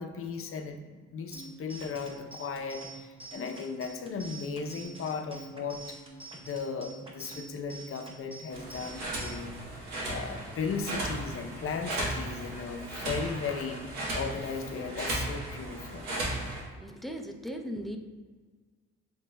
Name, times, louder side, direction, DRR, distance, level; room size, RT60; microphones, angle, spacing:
voice 1, 0.0-6.0 6.4-9.6 10.1-16.1, left 5 dB, 45° left, 4 dB, 0.6 m, -36 dB
sound 1, 1.3-9.3, right 3 dB, 20° right, 0.8 m, -47 dB
sound 2, 8.5-16.6, right 1 dB, 90° right, 1.3 m, -36 dB
voice 2, 16.8-18.0, equal, ahead, 3 dB, 0.4 m, -38 dB
7.3 x 3.2 x 2.2 m, 1.5 s
cardioid pair, 90°, 30 cm